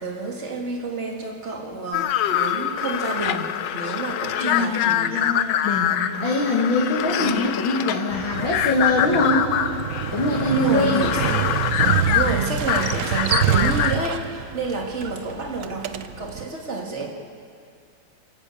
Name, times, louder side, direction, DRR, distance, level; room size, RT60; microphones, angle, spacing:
voice 1, 0.0-5.2 6.0-6.3 7.2-7.5 10.4-11.2 12.0-17.1, right 3 dB, 35° right, 1 dB, 2.3 m, -29 dB
sound 1, 1.9-14.2, left 10 dB, 70° left, 1.3 m, -25 dB
voice 2, 4.4-9.5 10.1-11.1, left 2 dB, 85° left, -5 dB, 2.9 m, -23 dB
Motorcycle, 8.1-16.4, right 10 dB, 65° right, 0.8 m, -27 dB
29.5 x 10.5 x 8.5 m, 2.3 s
omnidirectional pair, 2.1 m